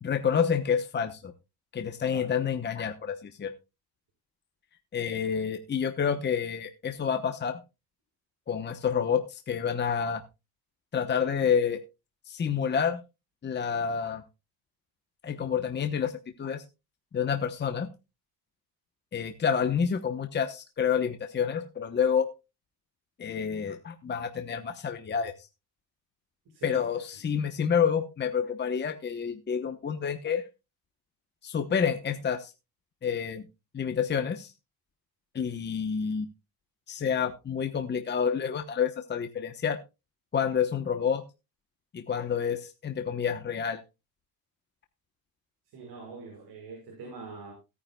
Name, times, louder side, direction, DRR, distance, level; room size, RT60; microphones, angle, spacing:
voice 1, 0.0-1.3 1.7-3.5 4.9-7.6 8.5-10.2 10.9-11.8 12.3-13.0 13.4-14.2 15.2-16.1 16.4-16.6 17.1-17.9 19.1-22.3 23.2-25.3 26.6-30.4 31.4-32.5 33.0-33.4 33.7-34.5 35.3-36.3 36.9-39.8 40.3-41.2 41.9-43.8, left 7 dB, 25° left, 7 dB, 1.0 m, -28 dB
voice 2, 26.5-26.8 35.5-35.6 45.7-47.5, right 4 dB, 65° right, -1 dB, 6.1 m, -44 dB
17.0 x 9.7 x 2.3 m, 0.26 s
cardioid pair, 135°, 40 cm